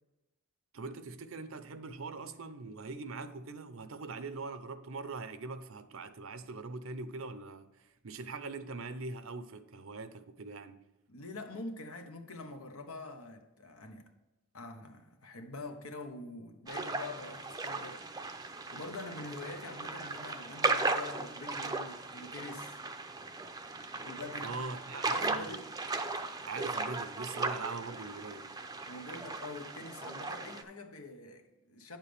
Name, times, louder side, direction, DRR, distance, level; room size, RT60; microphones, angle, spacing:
voice 1, 0.7-10.8 24.4-25.6 26.5-28.6, right 3 dB, 65° right, 0.7 m, -42 dB
voice 2, 11.1-14.1 14.5-18.0 18.3-18.4 18.7-22.7 24.0-24.6 25.1-25.7 28.9-32.0, left 2 dB, 85° left, 1.2 m, -45 dB
sound 1, 16.7-30.6, right 3 dB, 20° right, 0.5 m, -37 dB
9.2 x 7.3 x 3.4 m
head